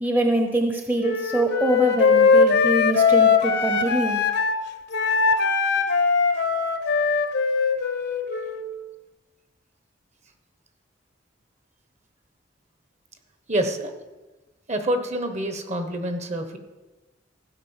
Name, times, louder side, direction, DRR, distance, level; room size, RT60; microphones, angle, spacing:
voice 1, 0.0-4.2, right 1 dB, 10° right, 4 dB, 0.8 m, -24 dB
Wind instrument woodwind instrument, 1.0-4.6 4.9-8.7, left 5 dB, 65° left, 0.9 m, -20 dB
voice 2, 13.5-13.9 14.7-16.6, right 1 dB, 40° right, 7 dB, 1.1 m, -26 dB
15.0 x 5.2 x 7.2 m, 1.2 s
head